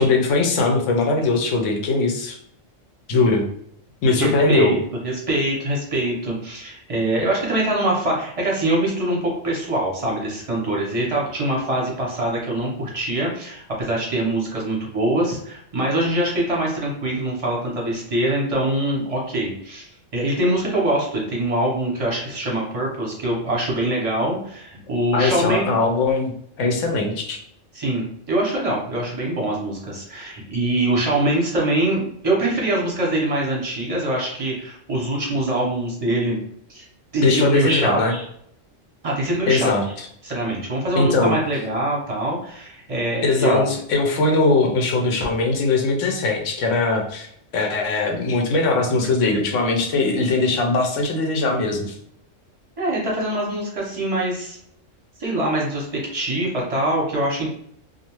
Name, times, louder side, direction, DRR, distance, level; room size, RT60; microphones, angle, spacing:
voice 1, 0.0-2.4 3.1-3.5 4.0-4.8 25.1-27.4 37.2-38.1 39.5-39.8 41.0-41.4 43.2-47.3 47.5-51.9, left 3 dB, 75° left, 3 dB, 0.9 m, -20 dB
voice 2, 4.2-4.8 5.0-19.9 20.1-25.7 27.7-36.4 36.7-36.8 37.1-38.2 39.0-39.7 40.2-43.7 52.8-54.6 55.2-57.5, right 1 dB, 35° right, -3 dB, 0.6 m, -23 dB
2.4 x 2.2 x 2.9 m, 0.69 s
omnidirectional pair, 1.3 m